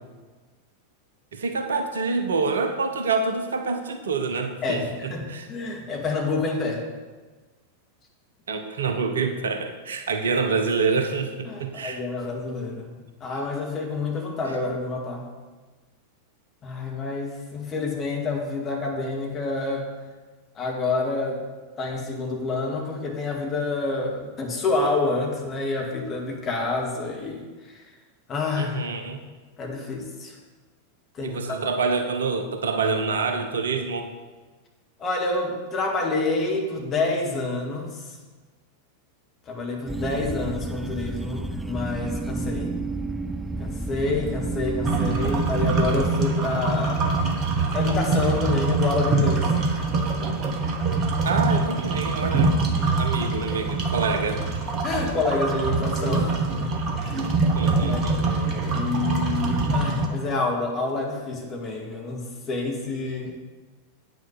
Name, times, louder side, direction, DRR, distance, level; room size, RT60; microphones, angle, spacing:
voice 1, 1.3-5.5 8.5-12.0 28.6-29.2 31.2-34.1 45.1-45.4 51.2-52.5 53.0-54.4 57.5-58.3, right 4 dB, 65° right, 5 dB, 0.9 m, -27 dB
voice 2, 4.6-6.8 11.5-15.3 16.6-19.9 20.6-21.4 21.8-27.9 28.3-28.8 29.6-30.4 31.1-31.6 35.0-38.2 39.5-42.8 43.6-47.0 47.7-50.1 52.8-53.2 54.8-56.7 57.0-57.5 57.8-63.4, left 3 dB, 25° left, -1 dB, 2.2 m, -28 dB
sound 1, 39.9-46.1, right 3 dB, 5° right, 0.3 m, -31 dB
sound 2, 44.8-60.1, right 3 dB, 35° right, 1.3 m, -24 dB
8.7 x 6.2 x 6.6 m, 1.3 s
figure-of-eight pair, 90°, 0 cm